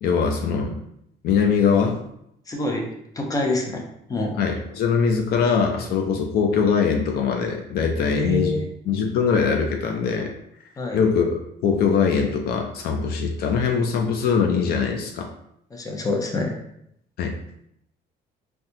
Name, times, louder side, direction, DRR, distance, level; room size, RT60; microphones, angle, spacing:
voice 1, 0.0-0.8 1.2-2.0 4.4-8.5 8.9-10.3 10.9-15.3 17.2-17.3, left 6 dB, 65° left, 3 dB, 0.5 m, -22 dB
voice 2, 2.5-2.9 3.1-3.8 4.1-4.3 8.0-8.6 10.8-11.0 15.7-16.5, left 2 dB, 20° left, 1 dB, 0.6 m, -25 dB
4.0 x 2.3 x 2.7 m, 0.75 s
cardioid pair, 110°, 17 cm